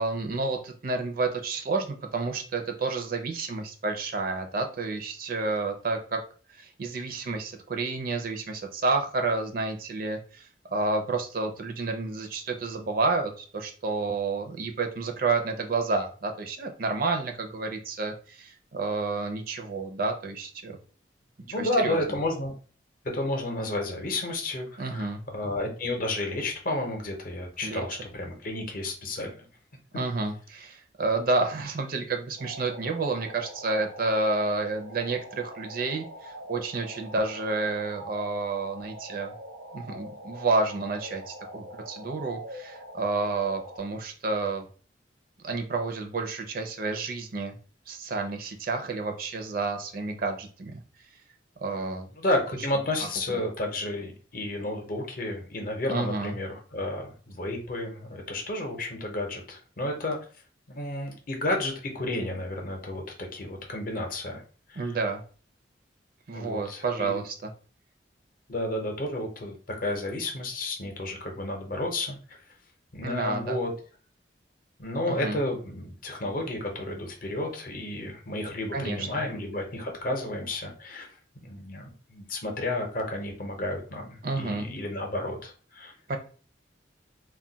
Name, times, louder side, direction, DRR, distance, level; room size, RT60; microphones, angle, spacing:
voice 1, 0.0-6.2 6.5-20.8 21.6-22.0 24.8-25.2 27.6-27.8 29.9-39.3 39.7-44.6 45.4-47.6 47.9-50.8 51.6-52.1 53.0-53.4 55.9-56.3 64.8-65.2 66.3-67.5 73.0-73.6 75.1-75.4 78.7-79.1 84.2-84.7 86.1-86.2, right 3 dB, 50° right, 4 dB, 0.5 m, -30 dB
voice 2, 21.4-22.5 23.1-29.5 52.2-60.2 60.7-64.4 64.7-65.0 66.3-67.2 68.5-72.4 72.9-73.7 74.8-81.1 81.4-85.9, left 1 dB, 50° left, 2 dB, 0.7 m, -32 dB
sound 1, 32.4-43.8, right 1 dB, 80° right, 0.7 m, -43 dB
2.3 x 2.1 x 3.8 m, 0.40 s
head